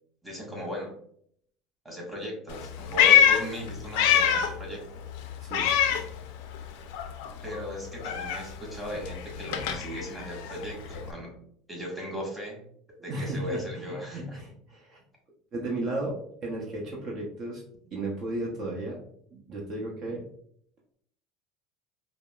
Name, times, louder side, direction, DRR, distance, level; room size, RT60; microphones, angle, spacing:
voice 1, 0.2-0.9 1.8-5.0 7.4-11.3 11.7-12.6 13.0-14.4, equal, 10° right, -3 dB, 1.5 m, -37 dB
Meow, 2.5-4.6 4.9-6.7 6.9-11.1, left 9 dB, 80° left, 0.4 m, -25 dB
voice 2, 5.4-5.8 13.0-15.0 15.5-16.1 16.4-17.6 17.9-19.0 19.3-20.2, right 2 dB, 50° right, -2 dB, 0.8 m, -34 dB
4.8 x 2.0 x 2.3 m, 0.66 s
supercardioid pair, 100°, 0 cm